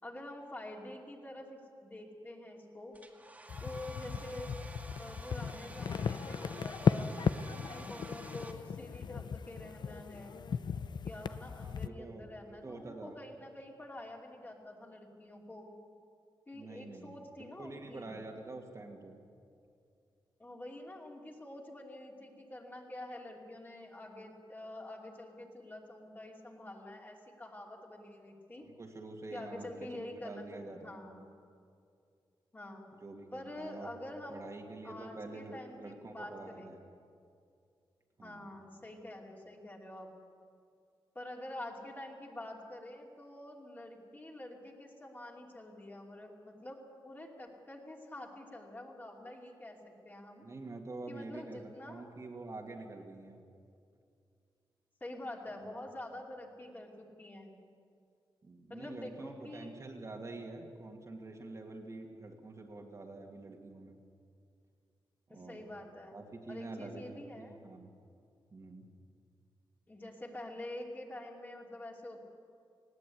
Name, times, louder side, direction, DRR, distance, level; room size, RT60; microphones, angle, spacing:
voice 1, 0.0-3.0 3.6-4.6 5.0-7.2 7.7-10.4 11.0-15.7 16.5-18.1 20.4-28.7 29.3-31.3 32.5-32.9 33.3-34.5 34.8-36.8 38.2-40.1 41.1-50.5 51.1-52.1 55.0-57.6 58.7-59.7 65.3-66.2 66.5-67.6 69.9-72.2, left 1 dB, 20° left, 0 dB, 2.8 m, -47 dB
Domestic sounds home sounds, 2.9-8.5, right 1 dB, 15° right, 2.0 m, -50 dB
sound 1, 3.5-11.9, left 6 dB, 60° left, 0.6 m, -36 dB
voice 2, 11.6-13.2 16.5-17.1 17.4-19.2 28.6-31.0 33.0-33.9 34.3-36.8 38.2-38.5 50.4-51.6 51.9-53.4 58.4-63.9 65.3-65.7 66.1-67.9 68.5-68.9, right 2 dB, 40° right, 1 dB, 2.2 m, -47 dB
19.5 x 16.5 x 8.4 m, 2.4 s
wide cardioid pair, 115°, 8 cm